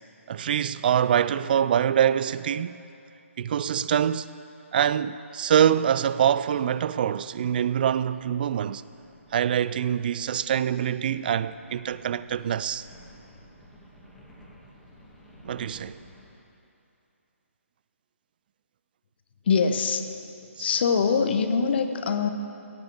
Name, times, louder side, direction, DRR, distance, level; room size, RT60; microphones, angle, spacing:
voice 1, 0.3-2.8 3.4-4.3 4.7-8.8 9.3-12.9 15.4-16.0 20.6-20.7, right 9 dB, 40° right, 0.4 m, -24 dB
sound 1, 8.3-16.3, equal, ahead, 2.5 m, -54 dB
voice 2, 19.4-20.1 20.6-22.3, left 5 dB, 45° left, 1.1 m, -23 dB
17.0 x 8.1 x 7.1 m
figure-of-eight pair, 145°, 8 cm